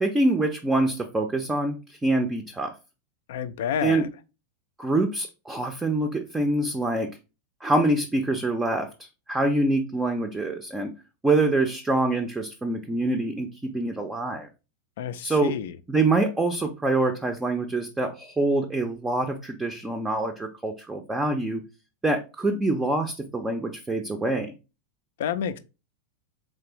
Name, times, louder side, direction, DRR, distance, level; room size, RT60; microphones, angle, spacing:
voice 1, 0.0-2.7 3.8-4.1 4.8-7.1 7.6-10.9 11.2-13.5 13.7-14.5 15.2-15.5 15.9-21.6 22.0-24.5, right 2 dB, 10° right, 0.5 m, -25 dB
voice 2, 3.3-4.1 15.0-15.7 25.2-25.6, left 9 dB, 55° left, 0.3 m, -29 dB
3.7 x 3.2 x 2.9 m
figure-of-eight pair, 90°, 0 cm